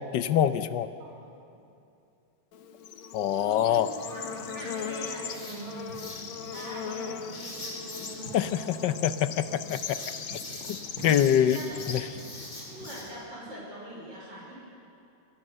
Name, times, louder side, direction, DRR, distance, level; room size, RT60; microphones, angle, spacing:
voice 1, 0.1-0.9 3.1-3.9 8.3-10.0 10.7-10.8 11.0-11.6 11.9-12.0, left 10 dB, 70° left, 12 dB, 1.4 m, -24 dB
Bird / Insect, 2.5-13.1, left 7 dB, 90° left, 1.9 m, -39 dB
voice 2, 3.3-9.0 9.4-9.7 11.5-11.8 12.7-14.6, right 1 dB, 65° right, -5 dB, 6.1 m, -43 dB
Writing, 3.8-13.0, left 1 dB, 50° left, 5.8 m, -44 dB
27.0 x 20.0 x 6.6 m, 2.6 s
omnidirectional pair, 2.1 m